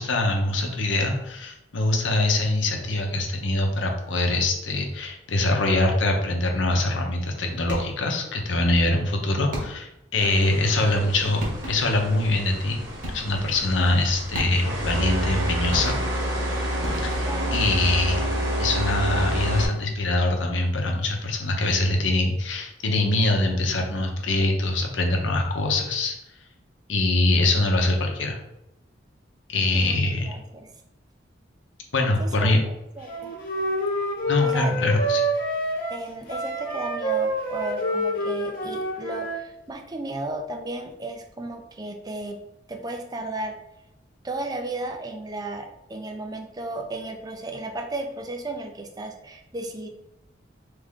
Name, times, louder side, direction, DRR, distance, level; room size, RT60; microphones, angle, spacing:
voice 1, 0.0-12.8 13.1-16.0 17.0-17.1 17.5-18.2 18.6-26.1 26.9-28.4 29.5-30.3 31.9-32.6 34.3-35.2, left 2 dB, 90° left, 2 dB, 0.8 m, -23 dB
sound 1, 7.7-8.1 9.5-10.0 11.1-11.2 11.4-12.0 13.0-13.5 14.3-14.9 15.7-16.4 16.8-17.5, equal, 45° right, 1.3 m, -34 dB
sound 2, 10.2-19.6, equal, 90° right, 1.1 m, -28 dB
voice 2, 17.2-17.9 29.7-30.7 32.2-33.1 34.4-34.8 35.9-42.4 42.7-43.6 44.2-49.9, right 2 dB, 20° right, 4 dB, 0.5 m, -34 dB
Wind instrument woodwind instrument, 33.0-39.4, equal, 50° left, 1.2 m, -27 dB
3.5 x 3.2 x 3.7 m, 0.88 s
head